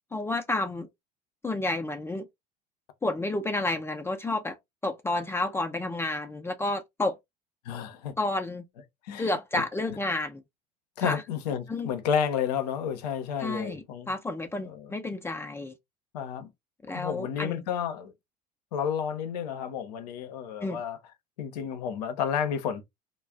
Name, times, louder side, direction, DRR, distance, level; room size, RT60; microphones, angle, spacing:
voice 1, 0.1-0.9 1.4-2.3 3.0-4.6 4.8-7.2 8.2-8.6 9.2-10.4 11.0-11.2 11.7-11.9 13.4-15.7 16.8-17.6 20.6-20.8, left 2 dB, 10° left, 0.4 m, -30 dB
voice 2, 7.6-8.1 9.0-9.4 11.0-14.1 14.6-14.9 16.1-16.5 16.9-18.1 18.7-21.0 21.4-22.9, left 8 dB, 70° left, 0.6 m, -31 dB
2.4 x 2.1 x 3.4 m
figure-of-eight pair, 70°, 21 cm